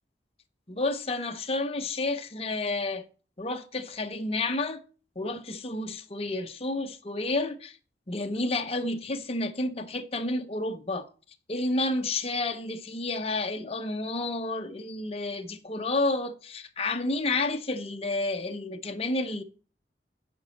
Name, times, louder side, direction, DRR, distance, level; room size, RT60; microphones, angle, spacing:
voice 1, 0.7-3.1 3.4-4.8 5.2-7.8 8.1-11.1 11.5-19.4, left 2 dB, 35° left, 0.9 m, -30 dB
9.6 x 5.3 x 7.1 m
head